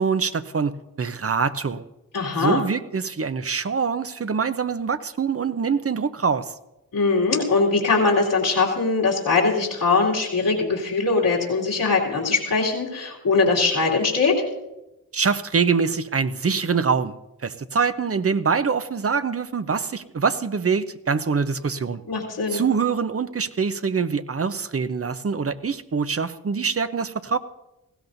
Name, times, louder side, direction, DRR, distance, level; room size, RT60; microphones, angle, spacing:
voice 1, 0.0-1.9 2.4-6.5 15.1-17.1 17.4-22.0 22.5-27.4, right 5 dB, 40° right, 12 dB, 0.8 m, -24 dB
voice 2, 2.1-2.6 6.9-14.3 22.1-22.6, left 4 dB, 85° left, -5 dB, 2.6 m, -21 dB
19.0 x 16.0 x 2.7 m, 0.96 s
cardioid pair, 45°, 36 cm